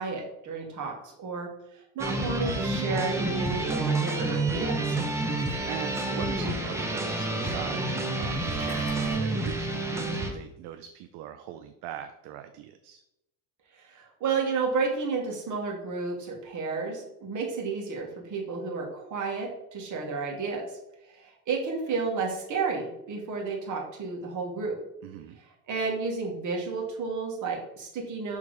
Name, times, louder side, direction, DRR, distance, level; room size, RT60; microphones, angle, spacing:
voice 1, 0.0-1.5 1.8-5.0 13.7-20.6 21.1-24.8 25.4-28.4, right 4 dB, 40° right, 0 dB, 1.7 m, -32 dB
sound 1, 2.0-10.3, right 2 dB, 5° right, 0.6 m, -29 dB
voice 2, 5.7-13.0 25.0-25.4, right 10 dB, 65° right, 8 dB, 0.6 m, -41 dB
sound 2, 8.2-9.4, left 2 dB, 30° left, 1.9 m, -41 dB
6.3 x 3.6 x 4.8 m, 0.85 s
cardioid pair, 145°, 44 cm